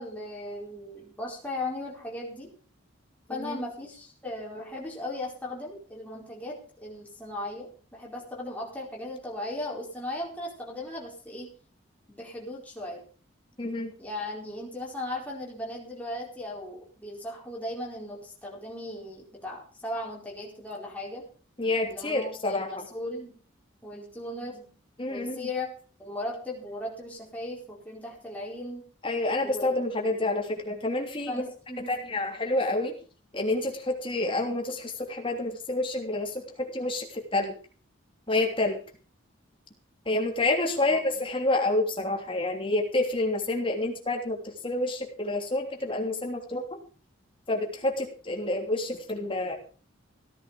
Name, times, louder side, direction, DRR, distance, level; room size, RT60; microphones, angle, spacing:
voice 1, 0.0-2.5 3.3-11.5 12.1-13.0 14.0-21.2 21.9-23.4 23.8-24.7 25.1-25.7 26.0-28.8 29.4-30.3 31.3-32.1 40.8-41.0, left 1 dB, 5° left, -3 dB, 4.5 m, -37 dB
voice 2, 13.6-13.9 21.6-22.9 25.0-25.5 29.0-31.4 31.9-33.0 33.3-37.5 38.3-38.8 40.0-46.8 47.5-49.6, left 2 dB, 25° left, 2 dB, 3.1 m, -28 dB
17.0 x 11.0 x 5.1 m, 0.40 s
head